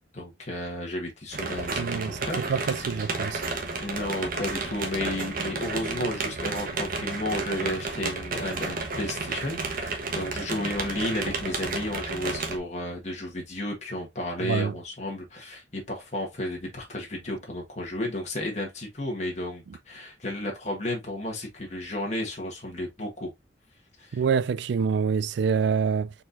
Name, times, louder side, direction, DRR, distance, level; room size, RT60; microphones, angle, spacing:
voice 1, 0.0-2.9 3.8-23.3 24.0-24.2, left 1 dB, 40° left, 1.4 m, -33 dB
sound 1, 1.3-12.6, right 3 dB, 50° right, 1.1 m, -32 dB
voice 2, 1.8-3.4 14.4-14.7 24.1-26.1, right 6 dB, 65° right, 0.3 m, -26 dB
4.5 x 4.1 x 2.6 m
head